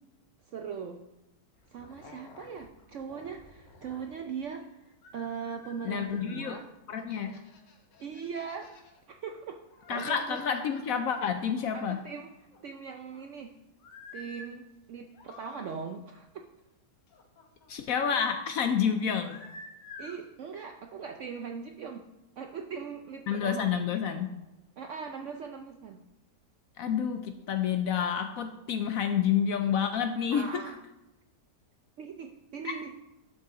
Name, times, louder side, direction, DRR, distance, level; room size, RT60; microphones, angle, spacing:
voice 1, 0.5-1.0 1.7-6.7 8.0-8.7 9.1-9.6 9.9-10.4 11.7-12.3 12.6-13.5 14.1-16.5 20.0-22.1 22.4-23.7 24.8-26.0 30.3-30.8 32.0-33.0, right 6 dB, 70° right, 4 dB, 0.7 m, -40 dB
sound 1, 1.6-4.6 5.0-6.6 7.0-9.0 9.4-12.2 12.5-13.3 13.8-14.5 15.0-15.7 17.1-18.1 19.0-20.2, left 3 dB, 85° left, 1.7 m, -51 dB
voice 2, 5.9-6.6 6.9-7.3 9.9-12.0 17.7-19.4 23.3-24.3 26.8-30.6 32.6-32.8, left 7 dB, 70° left, 8 dB, 0.8 m, -29 dB
11.5 x 5.3 x 3.8 m, 0.95 s
omnidirectional pair, 1.8 m